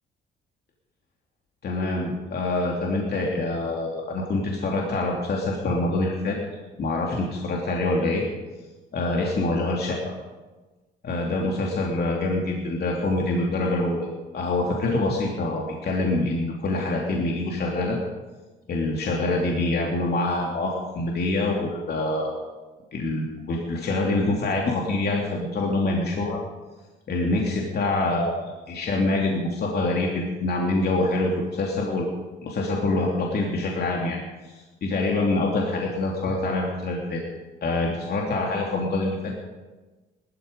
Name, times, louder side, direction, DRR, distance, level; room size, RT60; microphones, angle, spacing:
voice 1, 1.6-6.4 6.8-8.2 8.9-10.0 11.0-14.1 14.3-18.0 18.7-22.3 22.9-26.4 27.1-32.1 32.4-34.2 34.4-34.5 34.8-37.2 37.6-39.3, left 2 dB, 55° left, -1 dB, 2.8 m, -25 dB
19.5 x 13.5 x 5.3 m, 1.2 s
cardioid pair, 90°, 20 cm